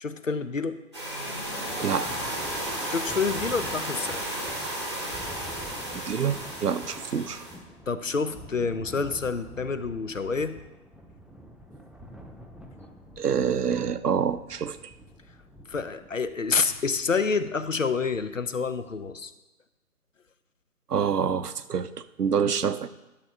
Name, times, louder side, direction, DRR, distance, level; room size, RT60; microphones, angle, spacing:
voice 1, 0.0-0.8 2.9-4.3 7.9-10.6 15.7-19.3 22.5-22.6, left 5 dB, 55° left, 12 dB, 0.6 m, -28 dB
sound 1, 0.9-7.6, right 1 dB, 20° right, 1.0 m, -33 dB
Thunder, 1.6-19.3, equal, ahead, 0.4 m, -47 dB
voice 2, 1.8-2.1 6.1-7.5 13.2-14.9 20.9-21.9 22.2-22.9, right 7 dB, 75° right, 13 dB, 0.7 m, -26 dB
11.0 x 6.7 x 3.6 m, 1.0 s
figure-of-eight pair, 165°, 46 cm